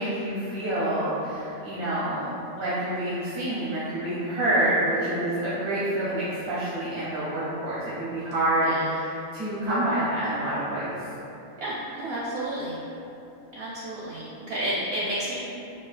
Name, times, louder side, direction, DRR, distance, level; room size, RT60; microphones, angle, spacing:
voice 1, 0.0-11.0, right 1 dB, 90° right, -10 dB, 1.3 m, -27 dB
voice 2, 11.6-12.8 13.5-15.4, right 1 dB, 65° right, -6 dB, 0.6 m, -31 dB
4.2 x 2.3 x 2.4 m, 2.8 s
omnidirectional pair, 1.5 m